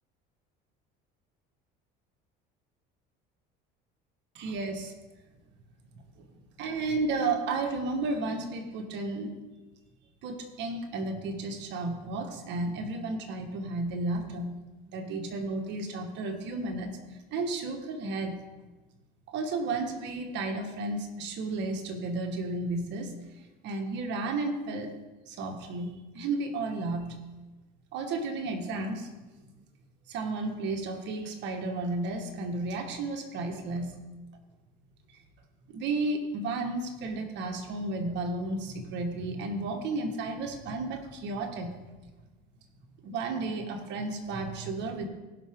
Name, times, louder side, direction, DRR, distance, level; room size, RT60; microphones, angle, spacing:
voice 1, 4.3-4.9 6.6-9.3 10.2-14.5 14.9-16.9 17.3-18.4 19.3-23.1 23.6-24.9 25.3-27.2 27.9-29.1 29.4-29.5 30.1-34.0 35.7-41.8 43.0-45.1, right 3 dB, 65° right, 4 dB, 1.6 m, -33 dB
16.0 x 5.7 x 3.7 m, 1.1 s
cardioid pair, 110°, 20 cm